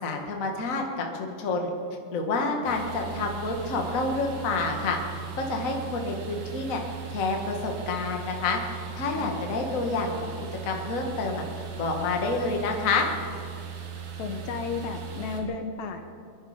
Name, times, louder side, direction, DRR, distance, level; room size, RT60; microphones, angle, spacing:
voice 1, 0.0-1.7 2.1-5.0 5.3-6.8 7.1-10.3 10.6-11.4 11.8-13.1, left 3 dB, 35° left, 2 dB, 1.5 m, -28 dB
sound 1, 2.6-15.4, right 7 dB, 90° right, 3.2 m, -38 dB
voice 2, 9.1-9.5 14.2-16.0, left 5 dB, 70° left, 6 dB, 2.2 m, -33 dB
23.5 x 10.5 x 5.1 m, 2.3 s
omnidirectional pair, 3.4 m